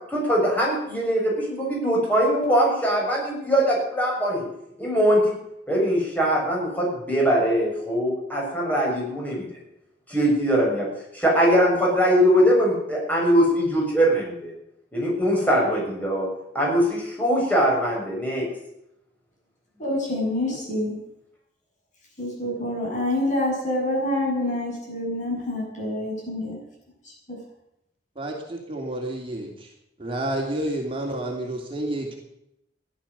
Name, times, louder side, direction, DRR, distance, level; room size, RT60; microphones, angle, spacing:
voice 1, 0.1-4.5 4.8-5.4 5.7-9.5 10.1-10.9 11.1-14.5 14.9-16.3 16.5-18.4, equal, 10° left, -3 dB, 6.9 m, -21 dB
voice 2, 19.8-20.9 22.2-26.6 27.3-27.4, left 1 dB, 45° left, -2 dB, 7.8 m, -27 dB
voice 3, 28.2-29.7 30.0-32.2, right 1 dB, 30° right, 0 dB, 2.8 m, -30 dB
16.0 x 11.5 x 6.9 m, 0.81 s
head